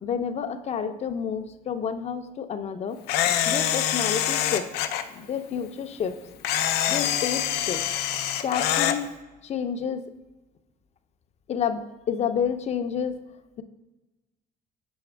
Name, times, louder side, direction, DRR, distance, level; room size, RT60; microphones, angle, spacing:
voice 1, 0.0-3.0 3.5-4.6 5.1-6.2 6.9-7.8 8.4-9.1 9.4-10.0 11.5-13.2, left 7 dB, 40° left, 8 dB, 0.5 m, -29 dB
Camera, 3.1-5.0 6.4-9.0, left 11 dB, 90° left, 0.5 m, -25 dB
7.1 x 4.2 x 3.3 m, 1.1 s
cardioid pair, 110°, 17 cm